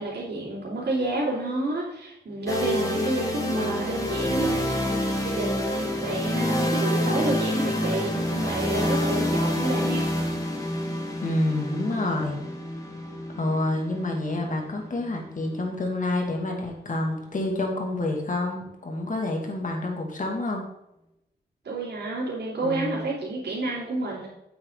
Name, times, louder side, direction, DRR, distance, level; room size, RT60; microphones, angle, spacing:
voice 1, 0.0-10.1 21.6-24.3, right 2 dB, 80° right, -8 dB, 3.8 m, -30 dB
sound 1, 2.5-16.3, left 1 dB, 20° left, 2.5 m, -28 dB
voice 2, 11.2-12.4 13.3-20.6 22.6-23.0, left 2 dB, 50° left, 1 dB, 2.6 m, -28 dB
8.7 x 8.7 x 4.1 m, 0.85 s
wide cardioid pair, 90°, 18 cm